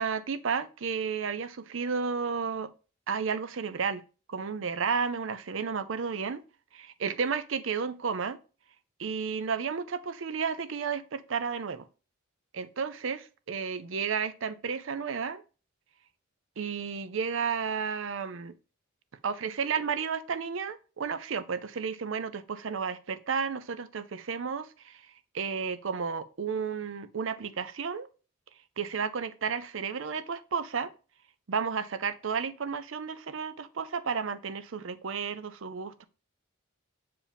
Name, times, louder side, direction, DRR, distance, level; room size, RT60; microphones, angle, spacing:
voice 1, 0.0-2.7 3.1-4.0 4.3-6.4 6.7-8.4 9.0-11.9 12.5-15.4 16.6-18.5 19.2-25.0 25.3-28.1 28.8-30.9 31.5-36.1, right 6 dB, 65° right, 0.5 m, -32 dB
7.1 x 4.8 x 3.4 m
head